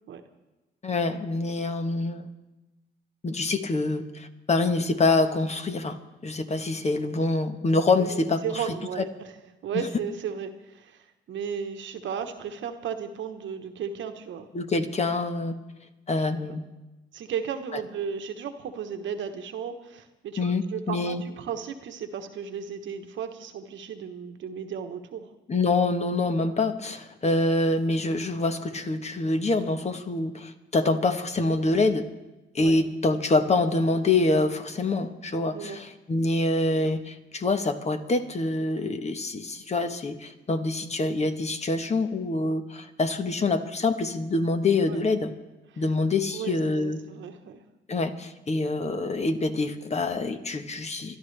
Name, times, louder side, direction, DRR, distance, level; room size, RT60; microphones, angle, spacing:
voice 1, 0.8-2.3 3.2-6.0 6.2-9.1 9.7-9.9 14.5-15.6 16.1-16.6 17.7-17.8 20.4-21.2 25.5-32.1 32.5-45.3 45.8-47.0 47.9-51.2, left 2 dB, 35° left, 8 dB, 1.2 m, -26 dB
voice 2, 8.0-9.3 9.6-14.5 16.5-16.6 17.1-25.3 27.2-27.4 32.6-32.7 35.5-35.8 44.9-45.0 45.7-45.8 46.3-47.6, right 7 dB, 70° right, 7 dB, 1.2 m, -35 dB
27.5 x 12.0 x 3.4 m, 1.0 s
cardioid pair, 90°, 20 cm